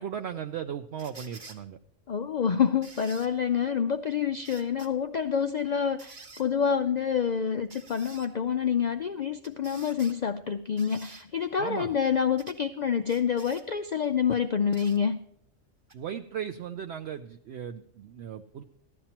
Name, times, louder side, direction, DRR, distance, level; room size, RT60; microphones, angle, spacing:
voice 1, 0.0-1.8 11.6-12.0 15.9-18.6, right 8 dB, 65° right, 7 dB, 0.7 m, -37 dB
sound 1, 1.0-1.6 2.8-3.3 4.4-4.9 6.0-6.5 7.7-8.3 9.4-10.2 10.8-11.2 12.4-12.6 13.1-13.6 14.7-15.0 15.9-16.0, right 4 dB, 40° right, 1.2 m, -49 dB
voice 2, 2.1-15.2, left 7 dB, 80° left, 8 dB, 0.4 m, -27 dB
15.0 x 12.0 x 2.9 m, 0.70 s
omnidirectional pair, 1.3 m